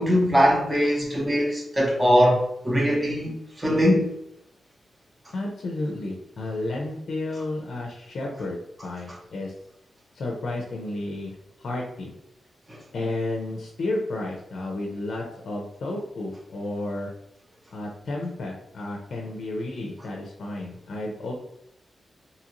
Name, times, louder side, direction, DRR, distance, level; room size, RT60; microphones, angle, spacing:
voice 1, 0.0-4.1 12.7-12.8, equal, 15° right, 0.8 m, -21 dB
voice 2, 5.3-9.5 10.2-12.1 12.9-17.1 17.7-21.3, left 2 dB, 70° left, 0.4 m, -32 dB
2.7 x 2.5 x 2.9 m
wide cardioid pair, 130°, 0 cm